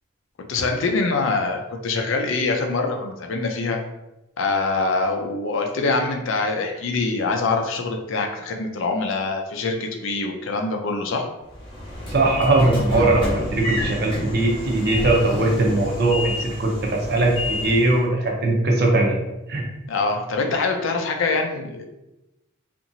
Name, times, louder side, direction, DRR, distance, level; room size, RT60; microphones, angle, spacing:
voice 1, 0.5-3.8 4.4-11.3 19.9-21.8, left 3 dB, 70° left, 3 dB, 0.4 m, -24 dB
Train / Sliding door, 11.5-18.0, left 1 dB, 25° left, 0.7 m, -29 dB
voice 2, 12.1-19.2 19.5-19.7, right 2 dB, 50° right, 0 dB, 0.6 m, -20 dB
2.8 x 2.5 x 2.6 m, 0.95 s
head